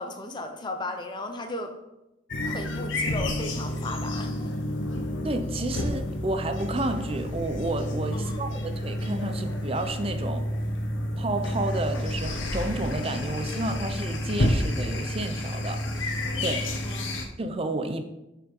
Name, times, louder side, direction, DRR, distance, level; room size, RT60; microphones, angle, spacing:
voice 1, 0.0-1.7 2.5-4.5 8.1-8.5 16.8-17.1, left 2 dB, 25° left, 5 dB, 0.6 m, -35 dB
sound 1, 2.3-17.3, left 1 dB, 90° left, 0.9 m, -30 dB
voice 2, 5.2-10.5 11.2-16.1 16.4-16.7 17.4-18.0, right 2 dB, 30° right, 7 dB, 0.6 m, -31 dB
7.2 x 5.7 x 3.7 m, 0.94 s
head